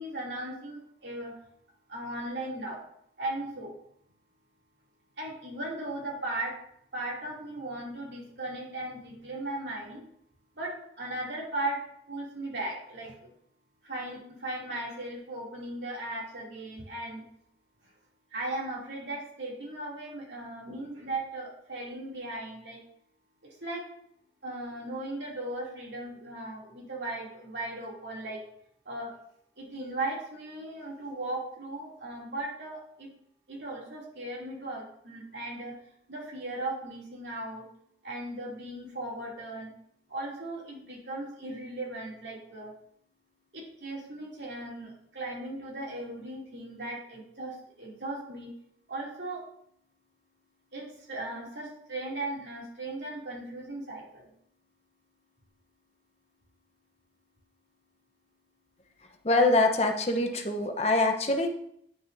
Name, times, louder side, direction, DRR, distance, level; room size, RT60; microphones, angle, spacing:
voice 1, 0.0-1.3 1.9-2.8 3.2-3.7 5.2-6.5 6.9-10.0 10.6-11.8 12.1-13.1 13.8-17.2 18.3-22.8 23.4-23.8 24.4-28.4 28.8-29.1 29.6-33.1 33.5-35.8 36.1-37.7 38.0-39.7 40.1-42.7 43.5-48.5 48.9-49.4 50.7-54.3, right 2 dB, 75° right, -4 dB, 2.8 m, -37 dB
voice 2, 59.2-61.5, left 2 dB, 35° left, 4 dB, 0.9 m, -24 dB
9.6 x 6.6 x 2.7 m, 0.70 s
head